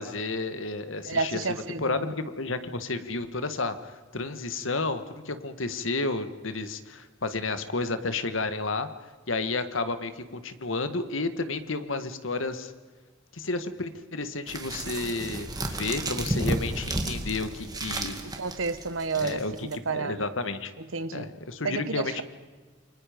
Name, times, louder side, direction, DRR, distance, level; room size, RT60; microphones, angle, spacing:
voice 1, 0.0-1.4 1.8-8.9 9.3-12.7 13.3-18.2 19.2-19.5 19.9-20.7 21.1-22.2, left 3 dB, 85° left, 10 dB, 1.6 m, -31 dB
voice 2, 1.0-2.1 18.2-20.3 20.8-21.3 21.6-22.2, right 4 dB, 90° right, 13 dB, 1.1 m, -31 dB
sound 1, 14.5-19.8, right 1 dB, 20° right, 2.2 m, -32 dB
28.5 x 25.0 x 5.2 m, 1.3 s
head